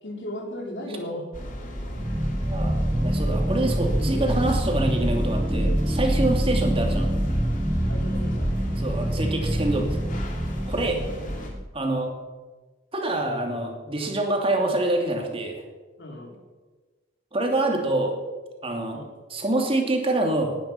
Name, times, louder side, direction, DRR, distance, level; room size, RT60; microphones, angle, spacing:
voice 1, 0.0-1.3 7.9-8.7 10.7-11.1 16.0-16.4 18.9-19.1, left 1 dB, 75° left, 1 dB, 3.7 m, -37 dB
sound 1, 1.3-11.5, equal, 50° left, 3.0 m, -33 dB
sound 2, 1.8-11.7, right 1 dB, 10° right, 0.5 m, -26 dB
voice 2, 2.4-7.1 8.8-10.0 10.7-11.0 11.7-12.1 12.9-15.6 17.3-18.1 18.6-19.0 19.3-20.6, right 2 dB, 30° right, 2 dB, 2.7 m, -26 dB
19.0 x 10.5 x 5.8 m, 1.3 s
head